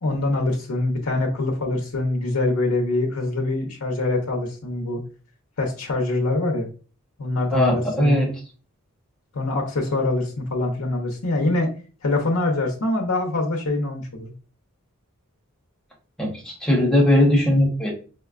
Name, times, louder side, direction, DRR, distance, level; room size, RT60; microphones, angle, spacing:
voice 1, 0.0-5.0 5.6-6.7 7.2-8.2 9.3-11.7 12.0-14.3, left 2 dB, 90° left, 1 dB, 0.7 m, -24 dB
voice 2, 7.5-8.3 16.2-16.3 16.6-17.9, left 1 dB, 5° left, -3 dB, 1.0 m, -18 dB
5.0 x 2.2 x 2.4 m, 0.37 s
head